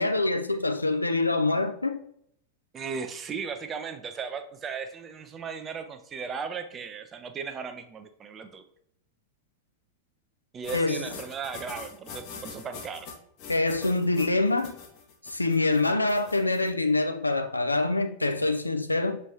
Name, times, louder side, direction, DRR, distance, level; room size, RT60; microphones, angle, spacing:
voice 1, 0.0-2.0 10.7-11.0 13.5-14.8 15.2-19.2, left 2 dB, 85° left, 0.4 m, -25 dB
voice 2, 2.7-8.6 10.5-13.1, right 6 dB, 25° right, 0.5 m, -36 dB
sound 1, 10.6-16.7, left 5 dB, 45° left, 0.8 m, -43 dB
6.2 x 3.1 x 2.7 m
figure-of-eight pair, 90°, 0 cm